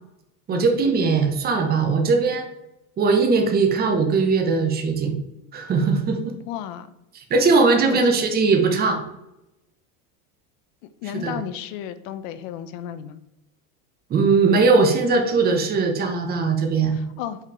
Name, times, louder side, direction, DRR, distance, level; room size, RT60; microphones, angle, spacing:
voice 1, 0.5-2.4 3.0-5.2 5.5-6.3 7.1-9.0 11.2-11.4 14.1-17.0, right 4 dB, 20° right, 4 dB, 0.9 m, -20 dB
voice 2, 6.4-6.9 7.9-8.0 11.0-13.2 16.9-17.4, left 10 dB, 60° left, 11 dB, 0.7 m, -33 dB
5.6 x 4.7 x 4.8 m, 0.89 s
supercardioid pair, 150°, 45 cm